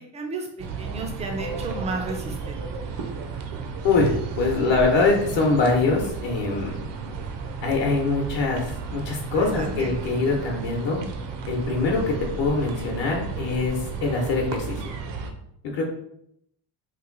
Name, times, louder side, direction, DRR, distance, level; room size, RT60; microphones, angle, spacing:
voice 1, 0.0-2.6 9.3-9.9, right 3 dB, 15° right, 2 dB, 0.3 m, -33 dB
sound 1, 0.6-15.3, right 5 dB, 60° right, 0.6 m, -33 dB
voice 2, 4.4-6.8 7.6-11.0 11.5-14.8 15.7-15.8, left 3 dB, 60° left, 0 dB, 0.8 m, -23 dB
3.0 x 2.6 x 3.8 m, 0.74 s
cardioid pair, 165°, 49 cm